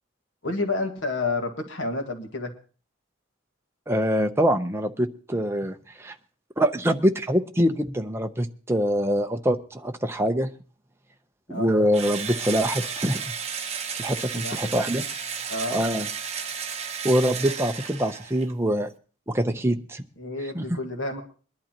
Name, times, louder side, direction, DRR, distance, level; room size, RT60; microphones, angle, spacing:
voice 1, 0.4-2.5 11.5-11.7 14.3-14.7 15.5-15.8 20.2-21.2, left 2 dB, 65° left, 4 dB, 1.7 m, -29 dB
voice 2, 3.9-6.1 6.6-10.5 11.5-13.2 14.0-15.0 15.7-16.1 17.0-18.9 19.3-20.0 20.5-20.8, equal, 10° right, 5 dB, 0.7 m, -24 dB
Engine / Drill, 11.9-18.5, right 6 dB, 30° right, 1.0 m, -33 dB
22.0 x 11.5 x 2.9 m, 0.38 s
head